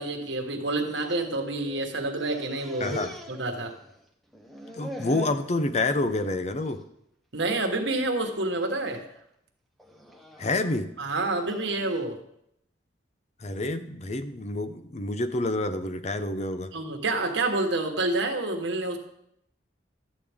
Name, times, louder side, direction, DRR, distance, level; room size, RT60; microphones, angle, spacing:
voice 1, 0.0-3.0 3.3-3.7 7.3-9.1 11.0-12.2 16.7-19.0, right 2 dB, 75° right, 4 dB, 1.4 m, -28 dB
sound 1, 0.8-1.9 2.2-4.0 4.3-5.5 6.0-6.3 6.7-6.8 7.7-8.1 8.6-9.0 9.8-12.0, left 1 dB, ahead, 1.0 m, -43 dB
voice 2, 2.8-3.1 4.7-6.8 10.4-10.9 13.4-16.7, left 2 dB, 40° left, 10 dB, 0.6 m, -28 dB
12.5 x 8.6 x 3.6 m, 0.75 s
head